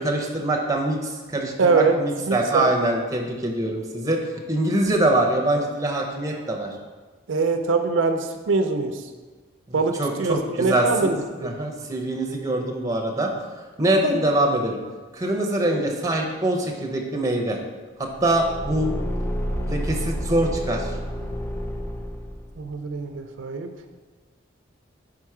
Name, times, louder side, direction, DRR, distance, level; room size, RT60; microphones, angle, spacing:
voice 1, 0.0-4.2 4.5-6.7 9.7-11.1 11.4-13.3 13.8-14.8 15.1-17.6 18.0-18.9 19.7-20.9, right 1 dB, 15° right, 1 dB, 0.7 m, -24 dB
voice 2, 1.6-2.0 2.3-2.7 7.3-9.0 9.7-11.5 22.6-23.7, right 4 dB, 80° right, 6 dB, 0.5 m, -23 dB
Car / Engine, 18.1-22.6, equal, 10° left, 0.3 m, -29 dB
4.9 x 4.5 x 4.8 m, 1.4 s
head